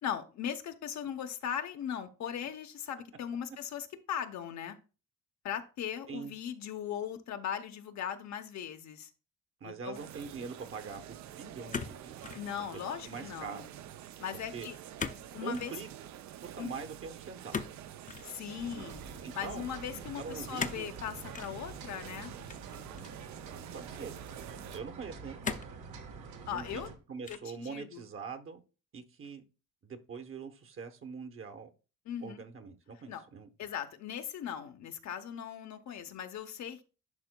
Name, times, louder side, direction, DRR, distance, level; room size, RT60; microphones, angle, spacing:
voice 1, 0.0-4.8 5.4-9.1 9.6-10.0 12.3-13.7 14.2-14.8 15.3-15.7 16.6-16.7 18.2-19.0 19.3-22.3 26.5-26.9 27.3-28.1 32.1-32.4 33.1-33.2 33.6-36.8, left 9 dB, 65° left, 0.8 m, -39 dB
voice 2, 9.6-12.4 13.0-13.7 14.5-14.7 15.4-15.9 16.4-17.6 18.7-18.9 19.2-19.6 20.2-20.9 23.7-24.1 24.7-25.6 26.5-28.6 28.9-29.4 29.8-31.7 32.2-33.5, right 5 dB, 45° right, 0.9 m, -43 dB
sound 1, 9.9-24.8, right 11 dB, 65° right, 0.5 m, -48 dB
sound 2, 11.7-12.5 12.8-13.3 15.0-15.3 15.5-15.8 17.5-18.3 20.6-20.9 21.3-21.5 22.5-23.2 23.9-24.0 25.4-25.8 26.4-26.9 27.2-27.6, left 5 dB, 25° left, 0.5 m, -38 dB
sound 3, 18.6-27.0, right 4 dB, 85° right, 1.2 m, -47 dB
11.0 x 4.4 x 2.2 m
cardioid pair, 90°, 30 cm